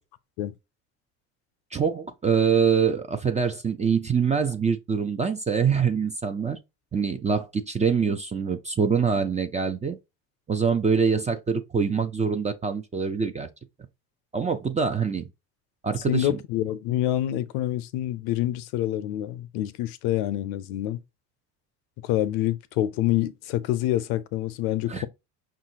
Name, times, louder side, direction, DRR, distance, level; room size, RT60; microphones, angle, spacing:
voice 1, 1.7-6.6 6.9-10.0 10.5-13.5 14.3-15.3 15.8-16.4 24.9-25.1, right 6 dB, 15° right, 0.4 m, -24 dB
voice 2, 16.1-21.0 22.0-25.1, left 13 dB, 65° left, 0.6 m, -26 dB
5.4 x 2.5 x 2.8 m
hypercardioid pair, 70°, 47 cm